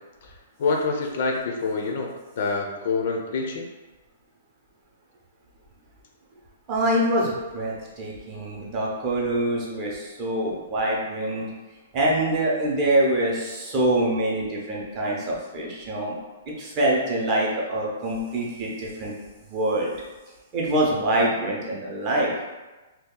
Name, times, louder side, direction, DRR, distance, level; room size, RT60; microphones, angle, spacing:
voice 1, 0.6-3.7, left 4 dB, 45° left, 1 dB, 0.4 m, -26 dB
voice 2, 6.7-11.5 11.9-16.1 16.5-19.1 19.5-19.9 20.5-22.3, right 1 dB, 20° right, -4 dB, 0.6 m, -25 dB
2.8 x 2.3 x 3.6 m, 1.2 s
hypercardioid pair, 175°, 0 cm